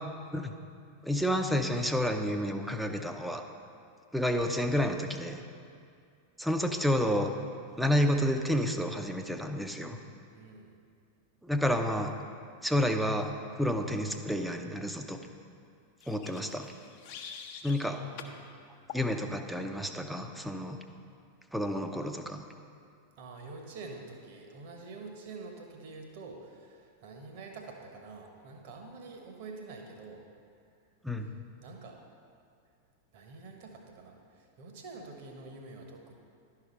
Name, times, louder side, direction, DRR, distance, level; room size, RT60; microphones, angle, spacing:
voice 1, 1.0-3.4 4.1-5.4 6.4-7.3 7.8-10.0 11.4-12.1 12.6-13.3 13.6-15.2 16.1-16.7 17.6-18.0 18.9-20.8 21.5-22.4 31.0-31.3, equal, ahead, 5 dB, 0.6 m, -30 dB
voice 2, 10.3-10.7 17.9-18.5 23.2-30.2 31.6-32.0 33.1-36.1, right 3 dB, 50° right, 2 dB, 1.2 m, -47 dB
sound 1, 16.0-17.9 18.2-18.4 18.9-19.1, left 7 dB, 45° left, 0.7 m, -45 dB
11.0 x 4.8 x 5.3 m, 2.3 s
figure-of-eight pair, 90°, 0 cm